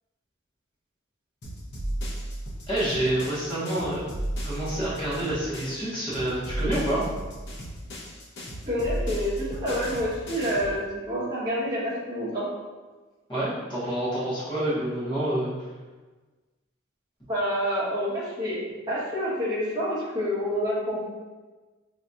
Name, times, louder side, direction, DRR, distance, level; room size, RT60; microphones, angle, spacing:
sound 1, 1.4-5.8 6.1-10.8, right 1 dB, 60° left, 0.7 m, -34 dB
voice 1, 2.7-4.0 4.4-7.0 13.3-15.5, right 1 dB, 25° left, -10 dB, 1.2 m, -28 dB
voice 2, 8.7-12.5 17.3-18.6 18.9-21.1, equal, 20° right, -9 dB, 1.0 m, -28 dB
4.8 x 2.7 x 2.4 m, 1.3 s
head